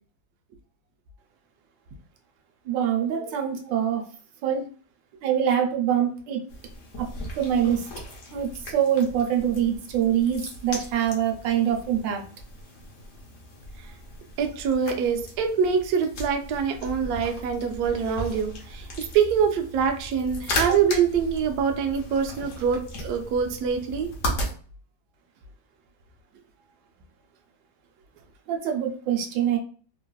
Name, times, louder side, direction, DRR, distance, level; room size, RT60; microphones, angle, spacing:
voice 1, 2.6-4.0 4.4-4.6 5.2-6.4 7.0-7.1 7.4-7.8 8.3-12.2 28.5-29.6, right 9 dB, 90° right, 2 dB, 1.4 m, -24 dB
sound 1, 6.5-24.5, left 1 dB, 55° left, 1.0 m, -37 dB
voice 2, 14.4-18.9 19.1-24.1, right 6 dB, 70° right, 4 dB, 1.0 m, -25 dB
3.3 x 2.4 x 2.2 m, 0.42 s
omnidirectional pair, 1.9 m